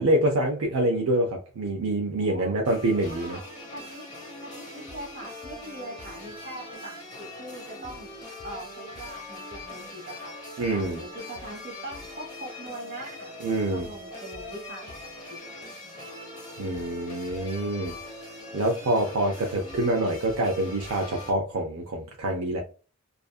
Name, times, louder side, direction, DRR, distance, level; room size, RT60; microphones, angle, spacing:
voice 1, 0.0-3.4 10.6-11.0 13.4-13.9 16.6-17.9 18.5-22.6, right 1 dB, 75° right, 0.5 m, -26 dB
voice 2, 2.2-2.6 3.0-3.4 3.7-4.0 4.4-8.1 8.4-10.4 10.7-15.4 15.8-16.2, right 1 dB, 50° right, 1.1 m, -42 dB
sound 1, 2.6-21.3, left 2 dB, 20° left, 1.1 m, -42 dB
2.6 x 2.5 x 2.3 m
head